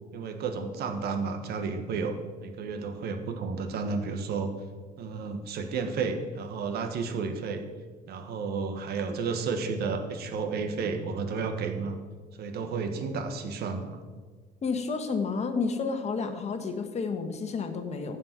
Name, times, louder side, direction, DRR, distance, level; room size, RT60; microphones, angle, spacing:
voice 1, 0.1-2.1 2.4-4.5 5.0-7.6 8.1-12.0 12.4-14.0, right 4 dB, 70° right, 6 dB, 1.4 m, -32 dB
voice 2, 14.6-18.2, left 4 dB, 40° left, 7 dB, 1.4 m, -30 dB
15.0 x 5.4 x 6.0 m, 1.4 s
cardioid pair, 110°, 17 cm